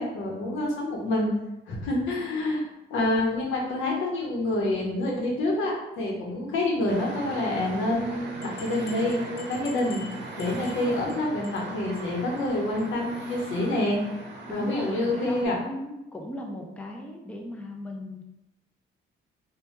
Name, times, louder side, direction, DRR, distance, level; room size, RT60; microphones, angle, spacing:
voice 1, 0.0-1.3 1.7-2.6 2.9-14.0 14.5-15.6, left 1 dB, 80° left, -1 dB, 0.8 m, -27 dB
sound 1, 6.9-15.5, right 2 dB, 60° right, 0.7 m, -39 dB
sound 2, 8.4-11.2 11.4-11.7 12.0-12.1 12.4-12.5 12.8-12.9, left 5 dB, 55° left, 0.6 m, -47 dB
voice 2, 14.5-18.3, left 1 dB, 5° left, 1 dB, 0.4 m, -37 dB
2.7 x 2.1 x 3.1 m, 0.93 s
cardioid pair, 90°, 20 cm